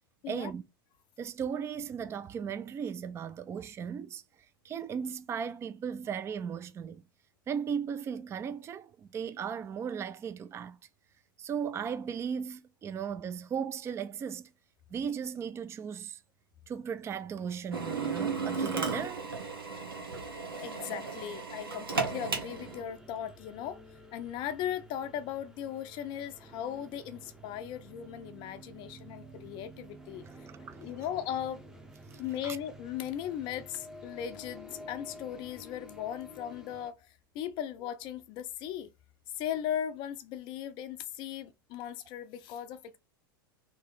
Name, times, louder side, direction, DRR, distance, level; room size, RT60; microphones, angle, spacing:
voice 1, 0.3-0.6 1.2-4.2 4.6-7.0 7.5-10.8 11.4-14.5 14.9-16.2 16.7-19.3 30.7-30.8 32.4-32.6, right 7 dB, 25° right, 0.4 m, -36 dB
Drill, 17.7-22.8, right 4 dB, 80° right, 1.2 m, -34 dB
voice 2, 20.6-23.8 24.1-30.3 30.8-31.6 32.2-38.9 39.4-43.0, left 10 dB, 40° left, 0.5 m, -38 dB
sound 1, 22.5-36.9, equal, 5° right, 0.8 m, -51 dB
3.2 x 3.0 x 3.8 m
figure-of-eight pair, 90°, 12 cm